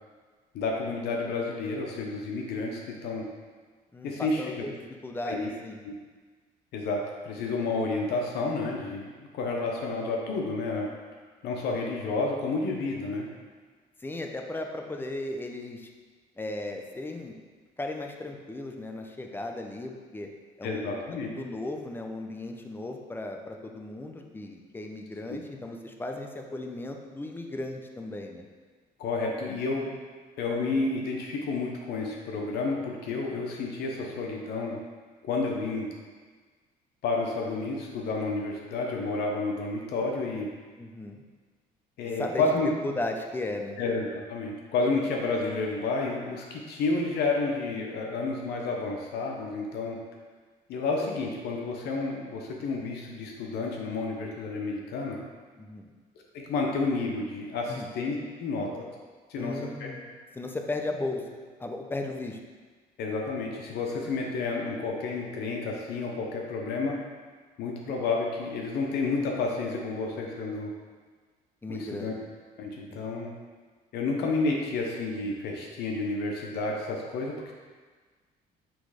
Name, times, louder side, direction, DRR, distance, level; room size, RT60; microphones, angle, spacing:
voice 1, 0.5-3.2 4.0-4.6 5.2-5.5 5.8-6.0 6.7-10.9 11.4-13.3 20.6-21.3 25.3-25.4 29.0-29.9 30.4-34.7 35.2-35.9 37.0-40.5 42.0-42.7 43.8-50.0 50.7-55.2 56.3-58.8 59.3-59.6 63.0-67.0 67.6-70.7 71.7-72.1 72.6-73.3 73.9-77.5, left 3 dB, 75° left, 0 dB, 0.9 m, -30 dB
voice 2, 3.9-4.7 5.0-5.8 14.0-15.9 16.4-17.3 17.8-20.3 20.6-20.9 21.3-28.5 40.7-41.2 42.2-42.5 42.8-43.8 55.6-55.9 57.7-57.9 59.4-60.1 60.3-62.4 71.6-72.1 72.9-73.0, left 2 dB, 10° left, 3 dB, 0.6 m, -36 dB
6.1 x 3.1 x 4.9 m, 1.5 s
cardioid pair, 110°, 17 cm